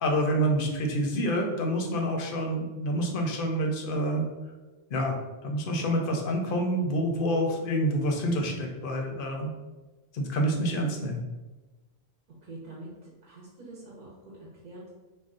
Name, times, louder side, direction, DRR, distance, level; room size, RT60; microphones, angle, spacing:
voice 1, 0.0-4.3 4.9-5.2 5.4-9.5 10.1-11.2, equal, 65° left, 2 dB, 0.7 m, -27 dB
voice 2, 12.5-14.1 14.6-14.9, right 2 dB, 55° right, -5 dB, 0.8 m, -45 dB
2.5 x 2.2 x 3.6 m, 1.2 s
omnidirectional pair, 1.1 m